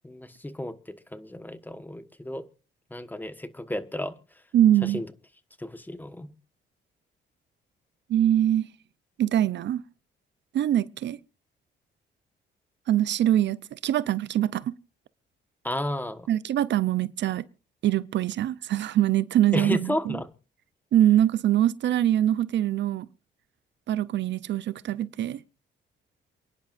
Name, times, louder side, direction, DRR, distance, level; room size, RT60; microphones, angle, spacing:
voice 1, 0.0-2.4 2.9-4.1 4.9-5.1 5.6-6.3 15.6-16.3 19.5-20.3, left 1 dB, 10° left, 1.3 m, -32 dB
voice 2, 4.5-5.0 8.1-8.7 9.2-9.8 10.5-11.2 12.9-14.7 16.3-17.4 17.8-20.2 20.9-23.1 23.9-25.4, right 12 dB, 65° right, 0.6 m, -23 dB
28.5 x 10.5 x 2.5 m
cardioid pair, 90°, 20 cm